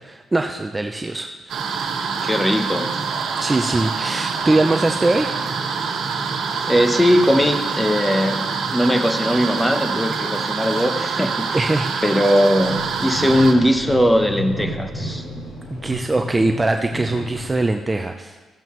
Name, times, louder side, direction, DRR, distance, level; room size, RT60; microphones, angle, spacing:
voice 1, 0.0-1.8 3.4-5.4 11.5-11.9 15.7-18.4, right 2 dB, 20° right, 5 dB, 0.5 m, -22 dB
sound 1, 1.5-13.5, right 5 dB, 70° right, 1.3 m, -25 dB
voice 2, 2.2-2.9 6.7-8.4 8.7-11.5 12.0-15.2, equal, 5° left, 7 dB, 0.8 m, -19 dB
sound 2, 12.5-17.6, left 1 dB, 85° left, 3.4 m, -32 dB
14.0 x 7.6 x 3.1 m, 1.3 s
cardioid pair, 90°, 0 cm